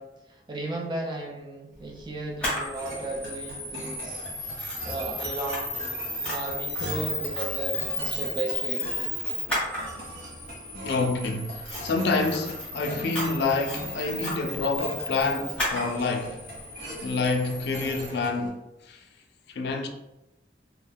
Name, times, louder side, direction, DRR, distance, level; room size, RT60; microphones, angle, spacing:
voice 1, 0.0-5.8 6.3-8.9, right 2 dB, 25° right, 0.4 m, -35 dB
Camera, 2.4-18.1, left 1 dB, 10° left, 0.9 m, -34 dB
sound 1, 2.5-18.5, right 1 dB, 60° right, 0.7 m, -41 dB
voice 2, 10.7-16.4 17.0-19.1 19.5-19.9, left 3 dB, 70° left, 0.3 m, -28 dB
2.3 x 2.2 x 3.4 m
head